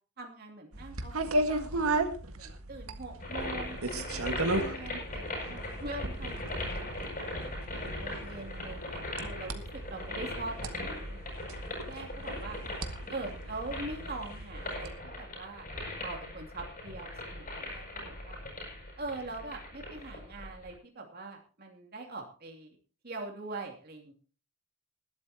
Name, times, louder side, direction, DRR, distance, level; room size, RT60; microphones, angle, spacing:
voice 1, 0.2-1.1 1.5-2.0 2.3-11.2 11.9-12.6 13.1-15.7 16.0-18.4 19.0-22.7 23.0-24.1, right 2 dB, 45° right, 1 dB, 2.8 m, -43 dB
sound 1, 0.7-14.9, right 2 dB, 85° right, 1.8 m, -36 dB
sound 2, 3.2-20.7, left 1 dB, 40° left, 7.6 m, -39 dB
20.5 x 12.5 x 2.9 m, 0.37 s
head